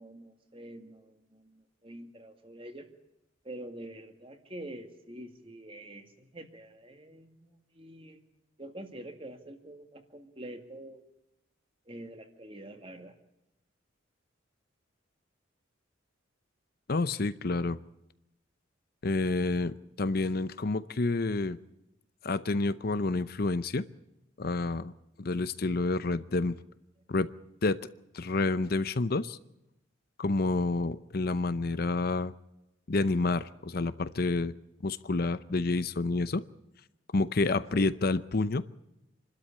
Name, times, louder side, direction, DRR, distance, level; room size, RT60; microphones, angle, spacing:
voice 1, 0.0-2.9 3.4-8.2 8.6-11.0 11.9-13.1 37.7-38.0, right 1 dB, 30° right, 6 dB, 2.2 m, -46 dB
voice 2, 16.9-17.8 19.0-21.6 22.2-23.8 24.4-24.9 25.2-26.5 27.1-27.3 27.6-27.8 28.1-29.4 30.2-32.3 32.9-34.5 34.8-36.4 37.1-38.6, left 3 dB, 50° left, 14 dB, 0.7 m, -29 dB
27.0 x 12.5 x 8.7 m, 0.87 s
head